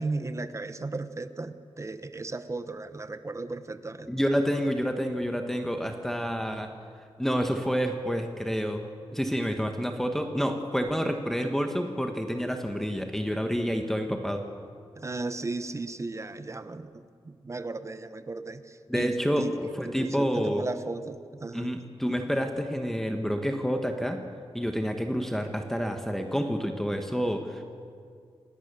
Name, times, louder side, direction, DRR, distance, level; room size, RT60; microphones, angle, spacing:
voice 1, 0.0-4.1 15.0-21.7, right 3 dB, 30° right, 11 dB, 1.0 m, -36 dB
voice 2, 4.1-6.7 7.2-8.8 9.1-14.4 18.9-20.6 21.5-24.2 24.5-27.6, equal, 5° left, 4 dB, 1.4 m, -28 dB
28.5 x 18.5 x 6.9 m, 2.2 s
wide cardioid pair, 125°, 10 cm